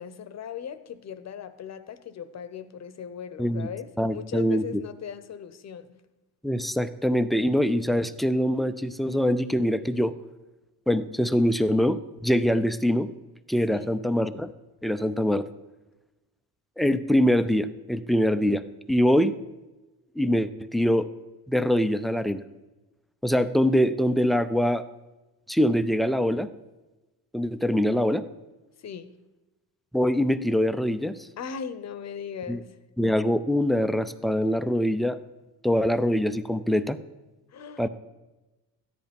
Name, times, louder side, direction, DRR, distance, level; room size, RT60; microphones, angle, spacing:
voice 1, 0.0-6.0 13.7-13.9 28.8-29.1 31.4-32.7 37.5-37.9, left 7 dB, 40° left, 14 dB, 0.8 m, -38 dB
voice 2, 4.0-4.6 6.4-10.1 10.9-13.1 13.5-14.5 14.8-15.4 16.8-18.6 18.9-19.3 20.2-21.1 21.5-22.4 23.2-24.8 25.5-26.5 27.3-28.2 29.9-31.3 32.5-32.6 33.0-35.2 35.6-37.0 37.8-37.9, equal, ahead, 12 dB, 0.4 m, -23 dB
13.5 x 10.5 x 5.3 m, 1.1 s
cardioid pair, 115°, 39 cm